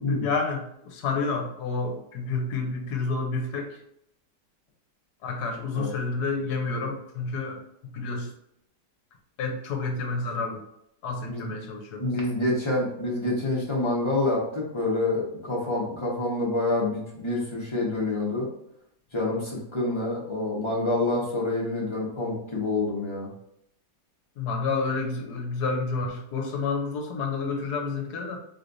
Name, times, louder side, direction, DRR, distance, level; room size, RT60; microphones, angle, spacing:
voice 1, 0.1-3.7 5.2-7.6 7.9-8.3 9.4-10.6 11.0-12.0 24.4-28.4, left 4 dB, 70° left, 2 dB, 1.3 m, -29 dB
voice 2, 12.0-18.5 19.1-23.3, left 2 dB, 20° left, -5 dB, 1.2 m, -27 dB
5.0 x 3.2 x 2.6 m, 0.75 s
omnidirectional pair, 1.8 m